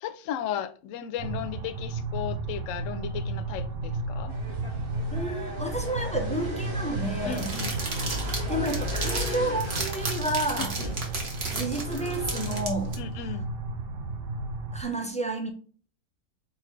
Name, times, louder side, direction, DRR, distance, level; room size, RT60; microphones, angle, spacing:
voice 1, 0.0-4.3 7.2-7.7 10.6-10.9 13.0-13.5, left 9 dB, 70° left, 0.8 m, -35 dB
sound 1, 1.2-14.8, right 2 dB, 75° right, 0.5 m, -33 dB
sound 2, 4.3-12.6, left 1 dB, 25° right, 0.9 m, -37 dB
voice 2, 5.1-7.5 8.5-10.8 11.5-13.0 13.2-13.3 14.7-15.5, right 1 dB, 10° left, 0.3 m, -31 dB
sound 3, 7.3-13.0, right 3 dB, 45° right, 1.3 m, -34 dB
4.2 x 3.9 x 3.2 m
omnidirectional pair, 1.6 m